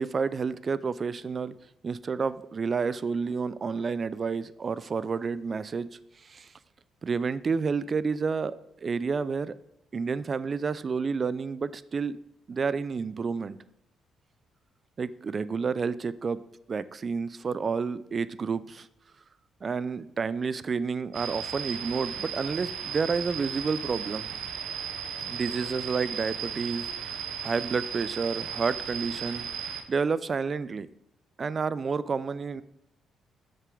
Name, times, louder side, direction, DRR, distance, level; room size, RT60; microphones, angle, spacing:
voice 1, 0.0-1.5 1.8-5.9 6.2-6.5 7.0-8.6 8.8-9.5 9.9-12.2 12.5-13.6 15.0-16.4 16.7-18.9 19.6-24.5 25.2-29.5 29.9-30.9 31.4-32.6, right 5 dB, 40° right, 16 dB, 0.4 m, -30 dB
sound 1, 21.1-29.8, right 7 dB, 80° right, 0.8 m, -35 dB
7.6 x 6.6 x 3.8 m, 0.81 s
cardioid pair, 90°, 0 cm